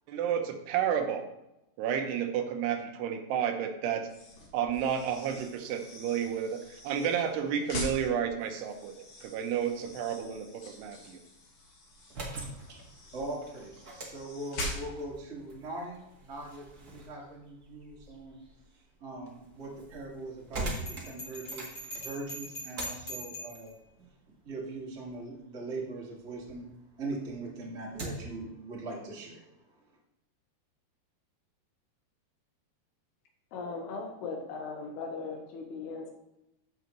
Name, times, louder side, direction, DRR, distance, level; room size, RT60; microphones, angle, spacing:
voice 1, 0.1-1.2 1.8-4.1 4.5-8.9 9.2-11.2, right 8 dB, 85° right, 6 dB, 3.0 m, -31 dB
sound 1, 4.0-15.2, left 1 dB, 65° left, 3.5 m, -44 dB
sound 2, 11.9-26.6 27.0-28.4, right 2 dB, 70° right, 0.8 m, -44 dB
voice 2, 13.1-18.4 19.0-23.8 24.3-29.9, right 2 dB, 35° right, -4 dB, 1.0 m, -41 dB
Bell, 20.7-23.7, equal, 35° left, 2.7 m, -42 dB
voice 3, 33.5-36.1, left 4 dB, 85° left, 3 dB, 3.3 m, -38 dB
14.5 x 5.7 x 3.1 m, 0.89 s
omnidirectional pair, 4.6 m